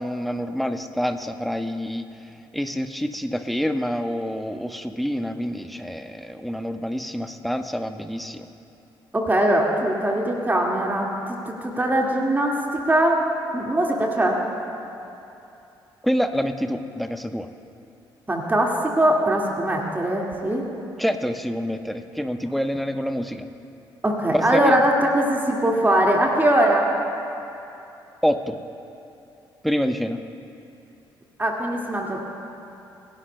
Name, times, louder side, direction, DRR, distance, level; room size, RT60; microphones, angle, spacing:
voice 1, 0.0-2.1 2.5-8.5 16.0-17.5 21.0-23.5 24.3-24.9 28.2-28.6 29.6-30.2, equal, ahead, 8 dB, 0.9 m, -27 dB
voice 2, 9.1-13.2 13.5-14.4 18.3-20.6 24.0-27.0 31.4-32.2, right 1 dB, 15° right, -1 dB, 2.0 m, -21 dB
28.0 x 16.5 x 2.2 m, 2.8 s
figure-of-eight pair, 40°, 12 cm